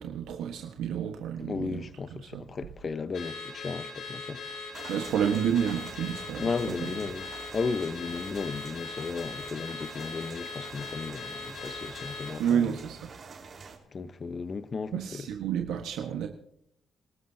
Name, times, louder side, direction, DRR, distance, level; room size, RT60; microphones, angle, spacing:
voice 1, 0.0-1.8 2.3-2.4 4.9-6.5 6.8-6.9 12.4-13.0 14.9-16.3, right 8 dB, 85° right, 1.4 m, -29 dB
voice 2, 1.4-4.6 6.4-12.8 13.9-15.3, left 4 dB, 40° left, 1.0 m, -35 dB
Car / Alarm, 3.1-12.4, left 4 dB, 65° left, 6.8 m, -40 dB
sound 1, 4.7-13.8, right 5 dB, 45° right, 4.3 m, -47 dB
28.5 x 13.0 x 2.8 m
cardioid pair, 90°, 0 cm